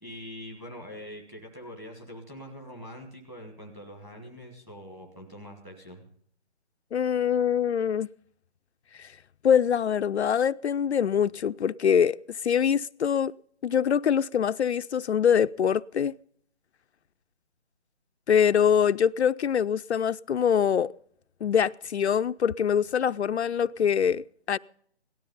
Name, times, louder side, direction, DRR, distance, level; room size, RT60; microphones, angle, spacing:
voice 1, 0.0-6.1, equal, 5° right, 1.3 m, -43 dB
voice 2, 6.9-8.1 9.0-9.1 9.4-12.2 12.4-13.3 13.6-16.1 18.3-20.9 21.4-24.6, left 8 dB, 75° left, 0.5 m, -24 dB
17.5 x 12.5 x 5.3 m
hypercardioid pair, 170°, 34 cm